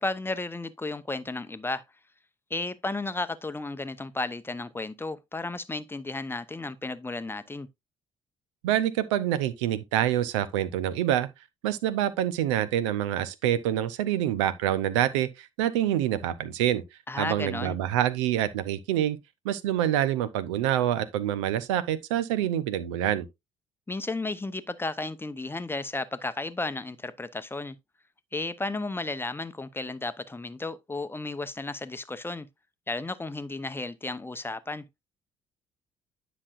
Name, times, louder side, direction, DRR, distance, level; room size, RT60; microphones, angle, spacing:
voice 1, 0.0-1.8 2.5-7.7 17.1-17.8 23.9-27.8 28.3-32.5 32.9-34.8, left 2 dB, 15° left, 0.7 m, -33 dB
voice 2, 8.6-11.3 11.6-16.8 17.2-19.2 19.4-23.3, right 11 dB, 75° right, 0.6 m, -26 dB
9.8 x 5.9 x 2.5 m
figure-of-eight pair, 50°, 15 cm